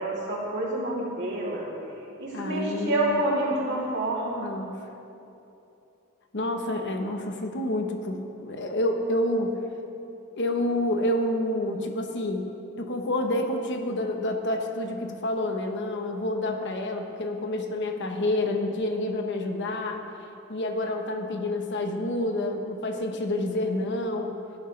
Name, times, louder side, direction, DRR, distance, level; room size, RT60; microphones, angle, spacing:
voice 1, 0.0-1.7 2.2-4.5, right 1 dB, 55° right, -5 dB, 3.0 m, -28 dB
voice 2, 2.3-3.2 4.3-4.7 6.3-9.6 10.3-12.5 12.8-20.0 20.5-24.4, left 1 dB, 55° left, 4 dB, 1.1 m, -28 dB
18.0 x 11.0 x 3.3 m, 2.8 s
head